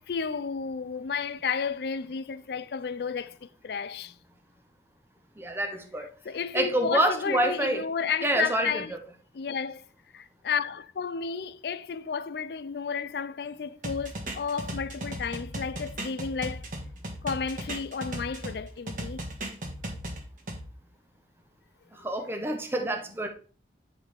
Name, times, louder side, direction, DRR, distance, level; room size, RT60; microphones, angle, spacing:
voice 1, 0.0-4.1 6.2-8.9 9.3-9.9 10.1-16.6 17.2-19.3, left 6 dB, 65° left, 0.4 m, -32 dB
voice 2, 5.4-6.1 6.5-7.8 8.2-8.8 21.9-23.3, right 1 dB, 15° right, 0.8 m, -27 dB
sound 1, 13.8-18.6 18.9-20.6, right 1 dB, 45° right, 1.5 m, -36 dB
9.7 x 4.8 x 3.4 m
head